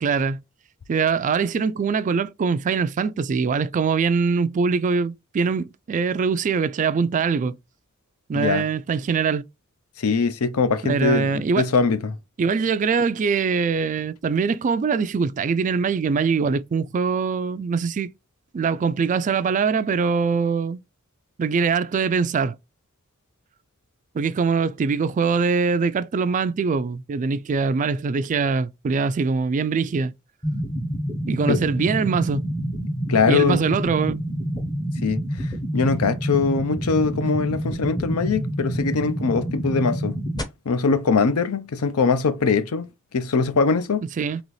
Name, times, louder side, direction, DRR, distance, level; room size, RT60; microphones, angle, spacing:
voice 1, 0.0-0.4 0.9-7.6 8.3-9.4 10.8-11.7 12.4-18.1 18.5-20.8 21.4-22.6 24.1-30.1 31.3-32.4 33.3-34.2 44.2-44.4, right 5 dB, 35° right, 0.3 m, -23 dB
voice 2, 8.3-8.7 10.0-12.2 31.5-31.6 33.1-33.6 35.0-40.2 40.7-42.9 43.1-44.0, left 4 dB, 80° left, 0.6 m, -22 dB
sound 1, 30.4-40.4, equal, 20° left, 0.7 m, -27 dB
4.0 x 3.0 x 3.1 m
head